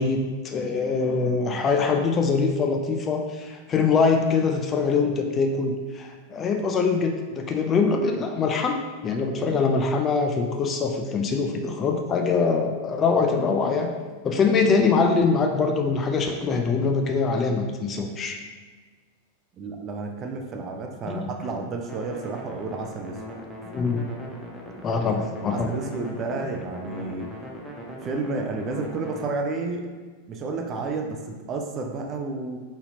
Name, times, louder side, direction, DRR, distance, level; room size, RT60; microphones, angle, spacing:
voice 1, 0.0-13.9 14.2-18.4 21.1-21.3 23.7-24.1 24.7-25.7, left 4 dB, 25° left, 3 dB, 0.4 m, -23 dB
voice 2, 19.5-23.2 25.5-27.3 28.0-29.9 30.3-32.6, right 3 dB, 30° right, 3 dB, 0.5 m, -31 dB
sound 1, 21.9-29.2, equal, 5° right, 0.8 m, -40 dB
4.1 x 4.1 x 2.7 m, 1.4 s
figure-of-eight pair, 90°, 0 cm